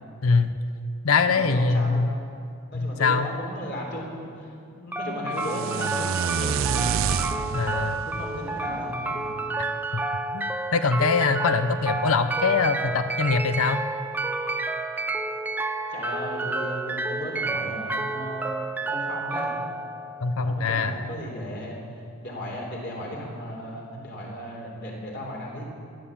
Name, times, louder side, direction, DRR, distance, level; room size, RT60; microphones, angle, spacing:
voice 1, 0.2-0.5 1.0-2.1 2.7-3.3 7.5-8.1 9.9-10.0 10.3-13.8 20.2-20.9, left 4 dB, 85° left, 10 dB, 0.7 m, -23 dB
voice 2, 1.2-2.0 2.7-7.5 8.1-9.4 15.9-18.5 18.9-19.5 20.4-25.6, equal, 50° left, -2 dB, 3.5 m, -35 dB
Pop Goes The Weasel Clockwork Chime, 4.9-20.9, right 3 dB, 10° right, 0.5 m, -30 dB
sound 1, 5.4-9.5, right 8 dB, 65° right, 0.4 m, -29 dB
15.5 x 11.0 x 7.2 m, 2.4 s
head